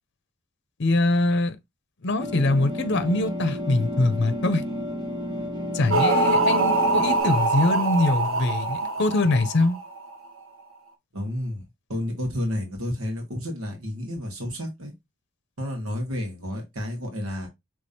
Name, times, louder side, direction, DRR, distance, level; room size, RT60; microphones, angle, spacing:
voice 1, 0.8-1.6 2.0-4.6 5.7-9.8, left 2 dB, 55° left, 0.7 m, -23 dB
sound 1, 2.2-7.2, left 1 dB, 20° right, 1.0 m, -32 dB
sound 2, 5.9-10.1, right 2 dB, 70° right, 1.0 m, -23 dB
voice 2, 11.1-11.6 11.9-14.9 15.6-17.5, left 1 dB, 90° right, 1.8 m, -31 dB
5.2 x 3.4 x 2.8 m
head